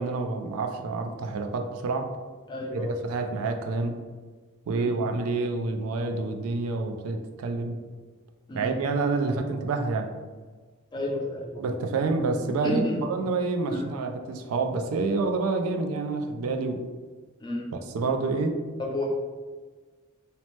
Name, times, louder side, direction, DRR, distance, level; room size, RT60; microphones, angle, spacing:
voice 1, 0.0-2.1 2.7-3.9 4.7-7.8 8.5-10.1 11.6-16.8 17.9-18.6, right 3 dB, 80° right, 5 dB, 0.3 m, -28 dB
voice 2, 2.5-3.0 4.7-4.9 8.5-8.7 10.9-11.6 12.6-13.0 13.7-13.9 17.4-17.7 18.8-19.0, left 1 dB, 20° left, -1 dB, 0.4 m, -31 dB
2.8 x 2.0 x 3.0 m, 1.4 s
head